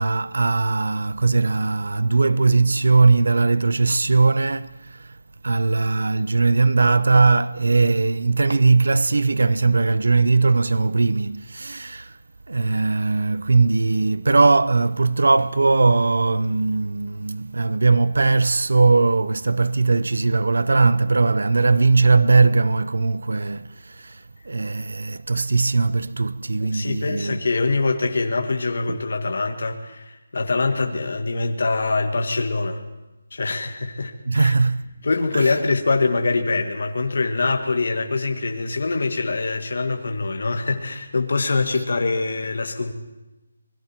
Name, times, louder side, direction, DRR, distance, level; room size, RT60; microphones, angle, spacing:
voice 1, 0.0-5.2 5.4-12.2 12.5-27.4 28.9-29.0 34.3-34.9 35.3-35.5, right 3 dB, 90° right, 0.6 m, -19 dB
voice 2, 26.6-32.8 33.3-34.5 35.0-42.9, left 3 dB, 60° left, 1.8 m, -24 dB
28.0 x 21.0 x 4.5 m
hypercardioid pair, 180°, 0 cm